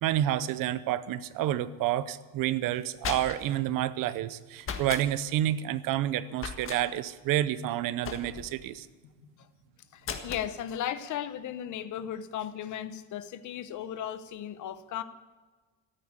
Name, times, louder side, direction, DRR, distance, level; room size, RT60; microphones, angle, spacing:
voice 1, 0.0-8.9, right 12 dB, 55° right, 16 dB, 0.8 m, -29 dB
sound 1, 2.7-3.6 4.6-5.1 6.4-6.8 8.0-8.6 10.0-10.5, left 6 dB, 35° left, 1.5 m, -37 dB
voice 2, 9.9-15.0, left 10 dB, 50° left, 13 dB, 1.0 m, -36 dB
14.5 x 8.9 x 9.7 m, 1.3 s
cardioid pair, 145°, 39 cm